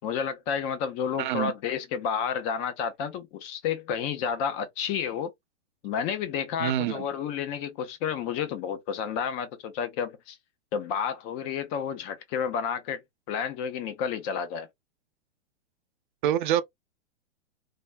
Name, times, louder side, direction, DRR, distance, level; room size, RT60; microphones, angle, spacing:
voice 1, 0.0-5.3 5.8-10.4 10.7-13.0 13.3-14.7, left 7 dB, 20° left, 0.3 m, -31 dB
voice 2, 1.2-1.5 6.6-7.0 16.2-16.6, right 11 dB, 45° right, 0.4 m, -26 dB
3.3 x 2.0 x 2.3 m
hypercardioid pair, 125°, 36 cm